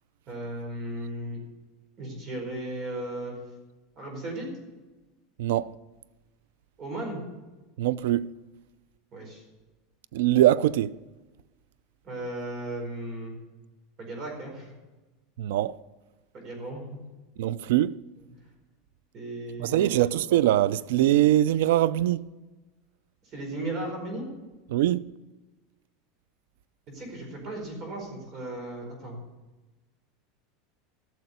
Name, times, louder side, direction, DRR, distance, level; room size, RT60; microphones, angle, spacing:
voice 1, 0.3-1.4 2.0-3.4 4.0-4.5 6.8-7.2 9.1-9.4 12.0-13.4 14.0-14.7 16.3-17.0 19.1-20.0 23.2-24.2 26.9-29.2, right 1 dB, 30° right, 4.6 m, -36 dB
voice 2, 5.4-5.7 7.8-8.3 10.1-10.9 15.4-15.8 17.4-17.9 19.6-22.3 24.7-25.1, right 13 dB, 80° right, 0.4 m, -22 dB
13.5 x 6.8 x 8.1 m
supercardioid pair, 160°, 0 cm